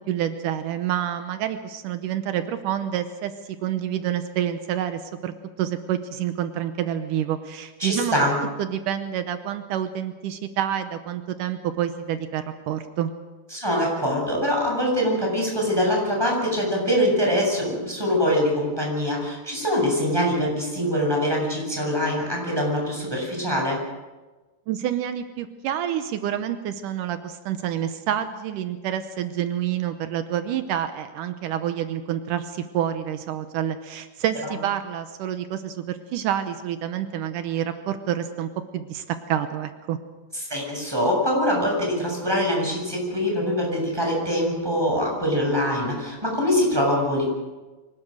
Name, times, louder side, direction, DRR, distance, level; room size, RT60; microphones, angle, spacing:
voice 1, 0.1-8.2 8.6-13.1 24.7-40.0, right 10 dB, 85° right, 9 dB, 2.5 m, -28 dB
voice 2, 7.8-8.4 13.5-23.8 40.5-47.3, equal, 5° right, -1 dB, 6.9 m, -23 dB
24.5 x 18.5 x 6.5 m, 1.2 s
omnidirectional pair, 3.7 m